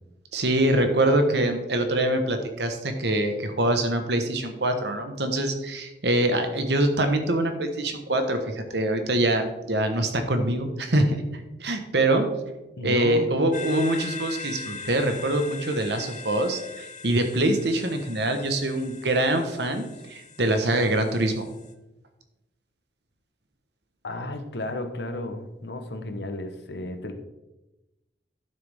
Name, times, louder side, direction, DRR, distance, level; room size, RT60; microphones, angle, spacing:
voice 1, 0.3-12.3 12.8-21.5, right 1 dB, 70° right, 6 dB, 1.3 m, -24 dB
voice 2, 12.8-13.3 24.0-27.1, left 2 dB, 65° left, 7 dB, 1.1 m, -33 dB
sound 1, 13.5-21.7, left 4 dB, 45° left, 0.7 m, -41 dB
11.5 x 6.6 x 3.6 m, 1.0 s
head